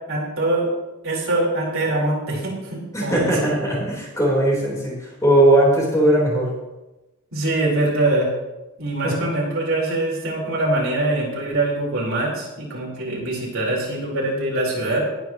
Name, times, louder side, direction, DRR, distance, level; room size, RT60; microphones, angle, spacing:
voice 1, 0.1-0.7 1.0-3.5 7.3-8.3 8.8-15.0, right 2 dB, 65° right, -4 dB, 4.4 m, -23 dB
voice 2, 2.9-6.5 9.0-9.3, right 1 dB, 15° left, -4 dB, 4.0 m, -19 dB
19.0 x 9.6 x 3.1 m, 1.0 s
head